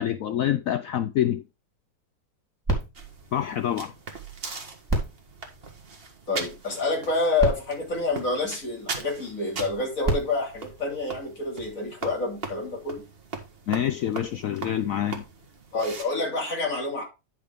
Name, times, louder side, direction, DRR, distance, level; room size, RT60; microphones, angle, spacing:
voice 1, 0.0-1.4 3.3-3.9 13.7-15.2, left 11 dB, 90° left, 0.7 m, -26 dB
sound 1, 2.6-4.3 4.8-6.4 7.1-7.2 7.4-9.0 9.8-11.6 12.3-12.4, right 2 dB, 10° right, 3.5 m, -32 dB
sound 2, 2.9-16.0, right 4 dB, 35° right, 1.5 m, -40 dB
voice 2, 6.3-13.0 15.7-17.0, left 3 dB, 45° left, 3.4 m, -28 dB
10.0 x 5.9 x 3.5 m
omnidirectional pair, 2.0 m